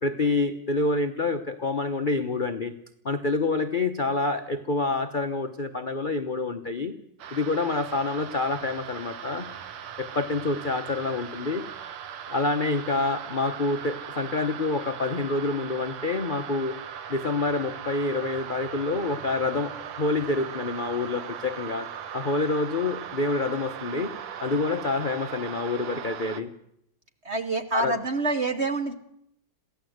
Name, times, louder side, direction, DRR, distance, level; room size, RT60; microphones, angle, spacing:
voice 1, 0.0-2.7 3.0-6.9 7.3-9.5 10.0-11.6 12.3-16.7 17.1-21.9 22.1-24.1 24.4-26.5 27.7-27.9, left 3 dB, 55° left, 8 dB, 0.5 m, -27 dB
sound 1, 7.2-26.4, right 8 dB, 80° right, 2.0 m, -39 dB
voice 2, 27.2-28.9, right 3 dB, 45° right, 8 dB, 0.9 m, -27 dB
22.5 x 15.5 x 7.9 m, 0.76 s
omnidirectional pair, 2.4 m